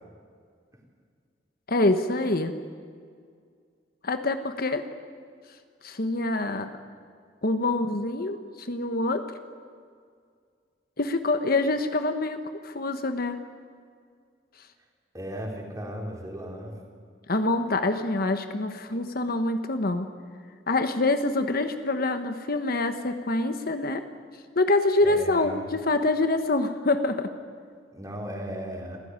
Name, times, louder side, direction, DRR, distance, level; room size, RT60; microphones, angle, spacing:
voice 1, 1.7-2.5 4.0-4.8 5.8-6.7 7.4-9.3 11.0-13.4 17.3-20.1 20.7-24.0 24.5-27.3, left 2 dB, 55° left, 8 dB, 1.3 m, -25 dB
voice 2, 15.1-16.8 25.0-25.7 27.9-29.0, equal, 20° right, 0 dB, 4.2 m, -36 dB
27.0 x 15.5 x 9.7 m, 2.1 s
head